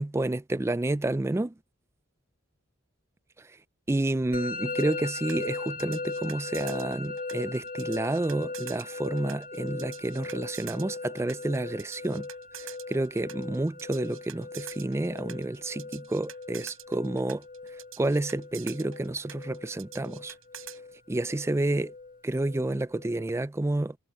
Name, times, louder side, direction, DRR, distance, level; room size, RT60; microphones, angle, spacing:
voice 1, 0.0-1.5 3.9-12.3 12.6-17.4 18.0-20.3 21.1-21.9 22.2-24.0, right 2 dB, 15° right, 0.3 m, -30 dB
Musical instrument, 4.3-23.2, left 3 dB, 40° left, 2.1 m, -39 dB
sound 1, 4.8-20.8, right 11 dB, 85° right, 6.1 m, -46 dB
head